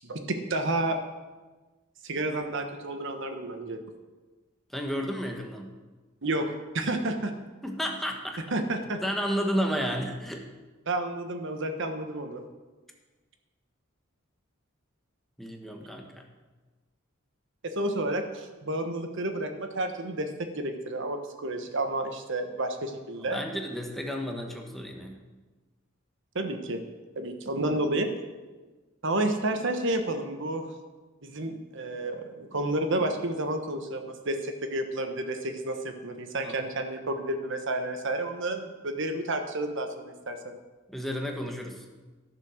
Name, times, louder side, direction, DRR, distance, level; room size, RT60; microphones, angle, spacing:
voice 1, 0.0-1.0 2.0-3.8 6.2-7.3 8.5-9.0 10.9-12.4 17.6-20.3 20.6-23.4 26.3-26.8 27.1-28.1 29.0-30.6 31.2-40.6, right 1 dB, 65° right, 6 dB, 1.2 m, -30 dB
voice 2, 4.7-5.7 7.6-8.4 9.0-10.5 15.4-16.2 23.3-25.2 36.4-36.6 40.9-41.8, equal, ahead, 2 dB, 1.2 m, -32 dB
13.5 x 7.2 x 6.5 m, 1.3 s
head